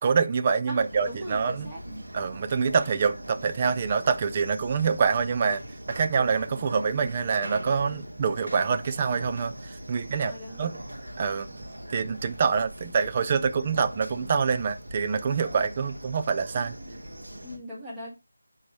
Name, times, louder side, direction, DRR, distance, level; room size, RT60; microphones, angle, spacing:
voice 1, 0.0-1.7 2.1-5.6 5.9-10.3 10.6-10.8 11.2-16.8, right 5 dB, 25° right, 0.5 m, -26 dB
voice 2, 0.7-2.0 7.8-8.1 10.0-10.8 16.8-17.0 17.4-18.1, equal, 10° right, 1.9 m, -41 dB
sound 1, 0.8-17.6, right 1 dB, 75° right, 2.0 m, -41 dB
10.0 x 4.0 x 3.0 m
figure-of-eight pair, 165°, 0 cm